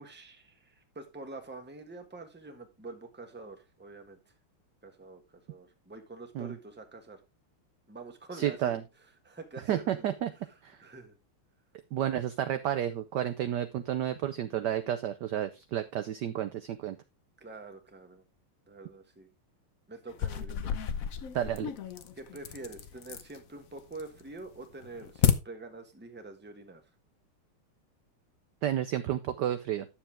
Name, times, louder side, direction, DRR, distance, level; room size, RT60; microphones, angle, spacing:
voice 1, 0.0-4.2 4.8-7.2 7.9-8.8 9.2-10.1 10.8-11.2 17.4-18.2 18.7-19.3 19.9-20.7 22.1-26.8, right 3 dB, 5° right, 5 dB, 1.1 m, -46 dB
voice 2, 8.3-8.8 9.7-10.3 10.6-10.8 11.9-17.0 21.3-21.7 28.6-29.9, right 11 dB, 70° right, 10 dB, 1.0 m, -31 dB
sound 1, 20.1-23.4 23.8-24.3 24.6-25.3, left 9 dB, 60° left, 0.9 m, -31 dB
10.5 x 7.1 x 3.5 m, 0.25 s
omnidirectional pair, 2.4 m